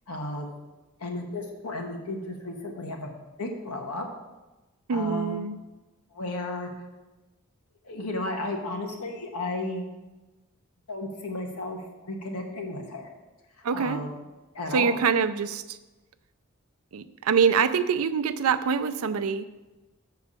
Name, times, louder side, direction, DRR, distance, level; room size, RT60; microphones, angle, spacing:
voice 1, 0.1-0.6 1.0-3.1 3.4-4.1 4.9-5.5 6.1-6.7 7.8-9.9 10.9-13.1 13.7-14.2 14.5-15.0, left 2 dB, 90° left, 2 dB, 1.3 m, -33 dB
voice 2, 4.9-5.6 13.6-14.0 14.7-15.8 16.9-19.4, right 6 dB, 80° right, 11 dB, 0.4 m, -25 dB
6.8 x 4.6 x 6.8 m, 1.1 s
head